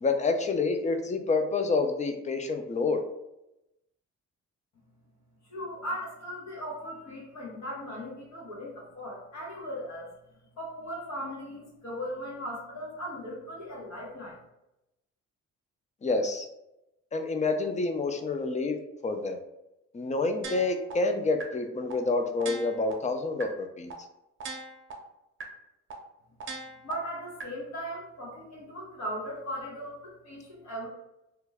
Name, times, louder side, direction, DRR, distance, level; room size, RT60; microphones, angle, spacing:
voice 1, 0.0-3.0 16.0-16.5 17.1-18.8 19.0-19.4 19.9-23.9, left 3 dB, 25° left, 6 dB, 0.4 m, -28 dB
voice 2, 5.5-10.1 10.6-14.4 26.8-30.9, equal, 65° left, -4 dB, 1.3 m, -38 dB
sound 1, 20.4-20.9 21.4-21.5 21.9-22.0 22.4-22.9 23.4-23.5 23.9-24.0 24.4-24.9 25.4-25.5 25.9-26.0 26.4-26.9 27.4-27.5, right 4 dB, 40° right, 0.8 m, -39 dB
2.9 x 2.2 x 3.4 m, 0.89 s
cardioid pair, 90°, 30 cm